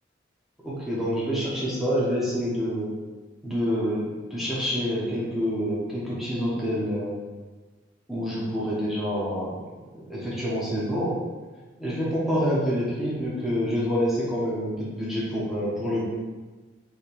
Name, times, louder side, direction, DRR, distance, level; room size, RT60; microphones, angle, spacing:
voice 1, 0.6-2.9 3.4-4.0 4.3-7.2 8.1-9.6 10.1-11.1 11.8-16.0, equal, ahead, -8 dB, 1.0 m, -27 dB
3.4 x 3.1 x 4.5 m, 1.3 s
head